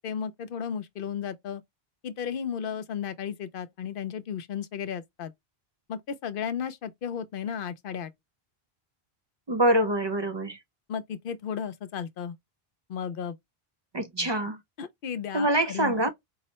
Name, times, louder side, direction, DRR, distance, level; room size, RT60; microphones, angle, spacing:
voice 1, 0.0-1.6 2.0-5.3 5.9-8.1 10.9-12.4 12.9-13.4 14.8-16.1, left 7 dB, 65° left, 0.7 m, -34 dB
voice 2, 9.5-10.6 13.9-14.6 15.3-16.1, right 1 dB, 40° right, 0.4 m, -25 dB
4.7 x 2.1 x 2.8 m
omnidirectional pair, 1.0 m